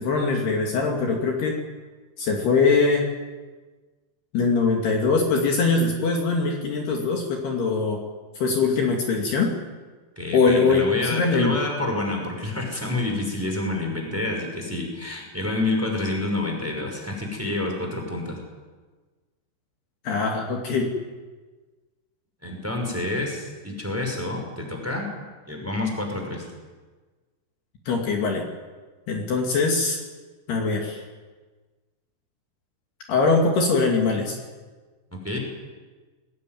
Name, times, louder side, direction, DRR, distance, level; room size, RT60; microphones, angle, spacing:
voice 1, 0.0-1.6 2.2-3.1 4.3-8.0 8.4-9.5 10.3-11.6 20.0-20.9 27.9-28.4 29.1-30.0 30.5-31.0 33.1-34.4, left 4 dB, 60° left, 0 dB, 4.1 m, -22 dB
voice 2, 10.2-18.4 22.4-25.1 25.5-26.4 35.1-35.4, left 2 dB, 5° right, 2 dB, 5.2 m, -28 dB
22.0 x 19.5 x 9.4 m, 1.3 s
omnidirectional pair, 5.7 m